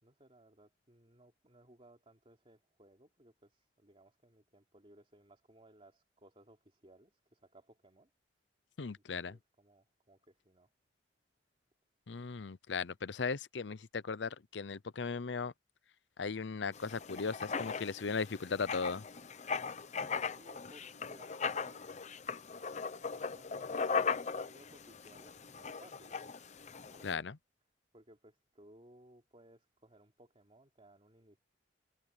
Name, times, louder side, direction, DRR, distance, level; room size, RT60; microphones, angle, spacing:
voice 1, 0.0-8.1 9.0-10.7 20.3-22.0 23.2-26.2 26.9-27.3 27.9-31.4, right 1 dB, 35° right, 3.3 m, -62 dB
voice 2, 8.8-9.4 12.1-15.5 16.2-19.0 27.0-27.3, left 5 dB, 75° left, 0.7 m, -37 dB
Writing, 16.7-27.1, left 5 dB, 40° left, 0.8 m, -39 dB
head